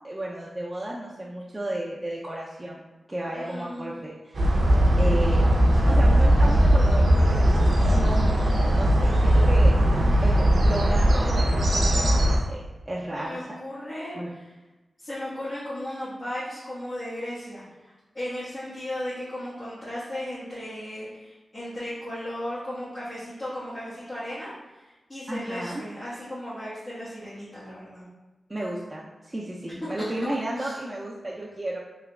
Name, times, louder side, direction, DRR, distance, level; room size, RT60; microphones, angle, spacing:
voice 1, 0.0-2.8 3.1-5.4 5.9-9.7 10.2-13.4 14.1-14.3 25.3-25.7 28.5-31.8, right 1 dB, 25° right, -4 dB, 0.5 m, -33 dB
voice 2, 3.3-3.9 13.1-14.5 15.0-28.0 30.0-30.1 30.6-30.8, left 1 dB, 40° left, -12 dB, 1.4 m, -36 dB
sound 1, 4.3-12.4, equal, 70° right, 0.6 m, -19 dB
3.5 x 3.0 x 2.3 m, 1.1 s
cardioid pair, 50°, 0 cm